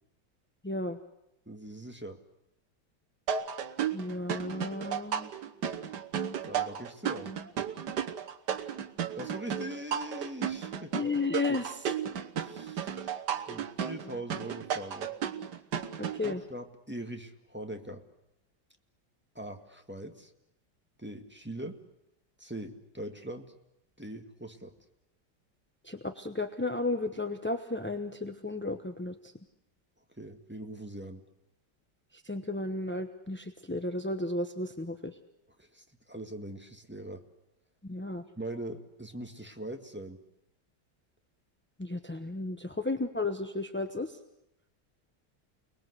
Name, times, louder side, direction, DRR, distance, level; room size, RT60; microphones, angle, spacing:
voice 1, 0.6-1.0 3.9-5.3 10.9-11.9 16.0-16.4 25.9-29.1 32.2-35.1 37.8-38.2 41.8-44.1, left 2 dB, 10° left, 7 dB, 0.7 m, -33 dB
voice 2, 1.4-2.2 6.5-7.3 9.1-11.1 12.4-13.1 13.5-15.1 16.2-18.0 19.3-20.3 21.0-21.8 22.4-23.5 24.0-24.7 30.2-31.2 35.6-37.2 38.4-40.2, right 1 dB, 5° right, 5 dB, 1.7 m, -42 dB
sound 1, 3.3-16.3, right 8 dB, 75° right, 1.8 m, -34 dB
29.5 x 20.5 x 8.1 m, 0.85 s
omnidirectional pair, 1.8 m